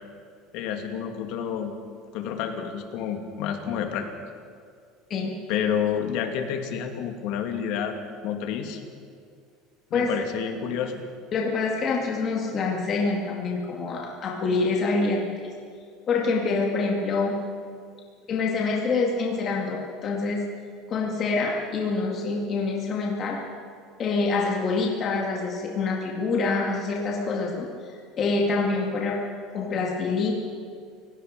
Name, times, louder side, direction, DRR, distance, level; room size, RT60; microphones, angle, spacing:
voice 1, 0.5-1.7 2.1-4.1 5.5-8.0 8.2-8.8 9.9-11.0, left 8 dB, 55° left, 4 dB, 2.5 m, -29 dB
voice 2, 9.9-10.2 11.3-15.5 16.1-17.4 18.3-20.4 20.9-23.4 24.0-29.3 29.5-30.3, left 3 dB, 30° left, -1 dB, 2.2 m, -26 dB
30.0 x 17.0 x 5.3 m, 2.2 s
cardioid pair, 175°, 0 cm